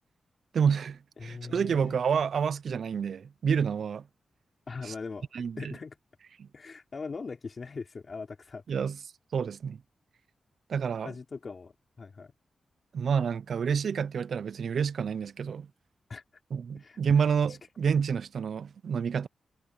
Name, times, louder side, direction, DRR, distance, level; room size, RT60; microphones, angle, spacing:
voice 1, 0.5-4.0 4.8-4.9 5.3-5.7 6.4-6.5 8.7-9.0 9.3-9.8 10.7-11.1 12.9-15.7 16.5-19.3, right 6 dB, 60° right, 0.4 m, -28 dB
voice 2, 1.2-2.0 4.7-5.3 5.6-6.0 6.5-8.6 11.0-12.3 16.1-16.2 16.7-17.0 17.5-17.6, left 4 dB, 35° left, 3.9 m, -40 dB
wide cardioid pair, 180°, 0 cm